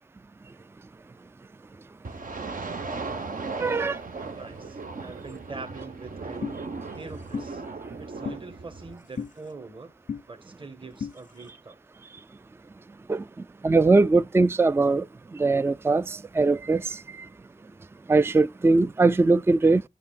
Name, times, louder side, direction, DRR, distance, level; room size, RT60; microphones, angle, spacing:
sound 1, 2.0-9.0, right 4 dB, 65° right, 1.0 m, -37 dB
voice 1, 3.6-3.9 13.1-17.3 18.1-19.8, right 3 dB, 15° right, 0.3 m, -21 dB
voice 2, 4.3-6.5 6.9-7.6 8.0-9.9 10.3-11.8, right 3 dB, 35° right, 1.4 m, -43 dB
sound 2, 6.4-6.6 7.3-7.5 8.2-8.4 9.2-9.3 10.1-10.2 11.0-11.1, left 7 dB, 60° left, 0.4 m, -32 dB
11.0 x 6.3 x 2.3 m
wide cardioid pair, 60°, 15 cm